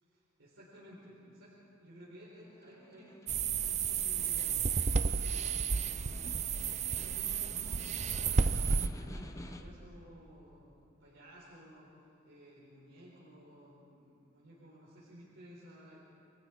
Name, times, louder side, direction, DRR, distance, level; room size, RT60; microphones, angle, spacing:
voice 1, 0.0-6.2 6.8-12.0 12.2-16.0, equal, 70° right, -6 dB, 4.5 m, -55 dB
Snare drum, 2.5-9.9, left 1 dB, 15° left, 0.9 m, -52 dB
sound 1, 3.3-8.9, right 5 dB, 35° right, 0.6 m, -32 dB
30.0 x 23.0 x 4.7 m, 2.6 s
head